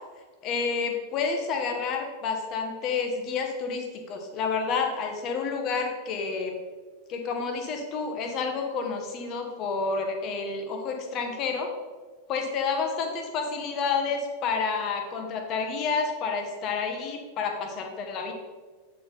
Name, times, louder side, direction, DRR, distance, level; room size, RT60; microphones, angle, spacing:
voice 1, 0.4-6.6 7.1-11.7 12.3-18.3, left 5 dB, 35° left, 3 dB, 1.1 m, -29 dB
8.1 x 4.3 x 4.2 m, 1.4 s
figure-of-eight pair, 90°, 0 cm